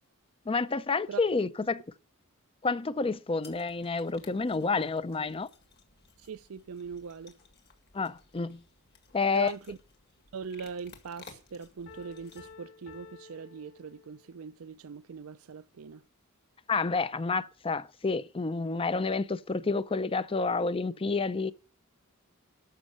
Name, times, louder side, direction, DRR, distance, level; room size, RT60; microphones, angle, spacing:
voice 1, 0.5-1.8 2.6-5.5 7.9-8.6 9.1-9.5 16.7-21.5, left 4 dB, 25° left, 0.5 m, -29 dB
voice 2, 1.1-1.5 6.2-7.4 9.3-9.8 10.3-16.0, right 6 dB, 70° right, 0.5 m, -41 dB
sound 1, 3.4-12.6, left 5 dB, 50° left, 1.9 m, -57 dB
Piano, 11.9-14.4, left 4 dB, 65° left, 3.3 m, -52 dB
13.5 x 5.3 x 7.8 m
head